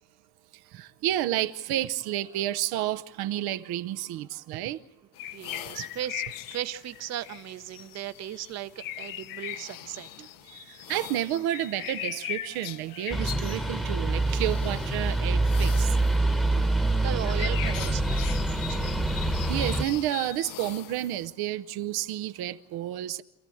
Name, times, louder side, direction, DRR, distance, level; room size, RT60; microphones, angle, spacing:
voice 1, 0.7-4.8 10.9-15.9 16.5-16.7 19.5-23.2, right 13 dB, 80° right, 0.8 m, -30 dB
sound 1, 5.1-21.3, left 13 dB, 60° left, 0.9 m, -40 dB
voice 2, 5.3-11.0 16.5-19.0, right 12 dB, 45° right, 0.8 m, -38 dB
sound 2, 13.1-19.8, right 2 dB, ahead, 1.1 m, -26 dB
27.0 x 15.0 x 8.5 m
cardioid pair, 175°, 37 cm